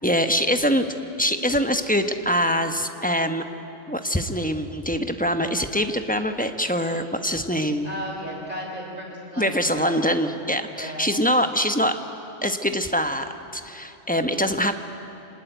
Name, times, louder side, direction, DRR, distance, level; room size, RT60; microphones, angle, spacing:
voice 1, 0.0-0.9 1.2-3.4 3.9-7.9 9.4-12.0 12.4-14.7, equal, 10° left, 7 dB, 1.0 m, -24 dB
voice 2, 7.8-10.0 10.7-11.1, equal, 40° right, -2 dB, 5.1 m, -35 dB
26.0 x 19.5 x 9.3 m, 2.8 s
omnidirectional pair, 1.1 m